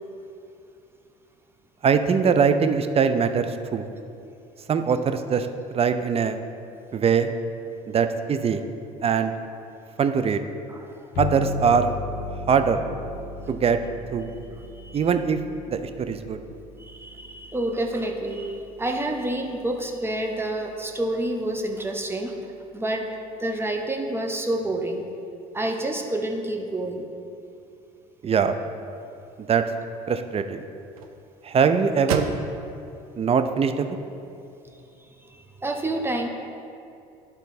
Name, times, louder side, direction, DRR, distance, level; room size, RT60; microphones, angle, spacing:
voice 1, 1.8-3.8 4.7-5.5 5.7-6.4 6.9-7.3 7.9-8.6 9.0-9.3 10.0-10.4 11.2-11.9 12.5-12.8 13.5-13.8 14.1-14.3 14.9-15.4 15.7-16.4 28.2-28.5 29.4-29.6 30.1-30.6 31.4-32.3 33.2-33.9, right 6 dB, 35° right, 9 dB, 0.6 m, -22 dB
voice 2, 10.7-11.1 14.6-15.0 16.8-22.3 22.7-23.1 23.4-25.0 25.5-27.1 35.3-36.3, right 1 dB, 10° right, 3 dB, 1.0 m, -28 dB
sound 1, 11.1-20.4, left 3 dB, 65° left, 0.7 m, -37 dB
sound 2, 28.5-34.7, right 6 dB, 85° right, 0.5 m, -37 dB
11.0 x 4.0 x 4.1 m, 2.6 s
hypercardioid pair, 65°, 18 cm